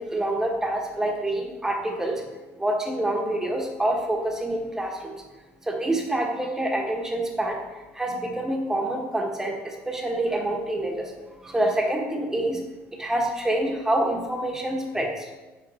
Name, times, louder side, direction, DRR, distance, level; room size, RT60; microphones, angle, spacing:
voice 1, 0.0-2.2 2.6-5.1 5.6-7.6 7.9-11.1 11.4-12.6 12.9-15.3, right 1 dB, 10° right, 1 dB, 1.3 m, -27 dB
6.0 x 4.3 x 4.3 m, 1.2 s
supercardioid pair, 90°, 6 cm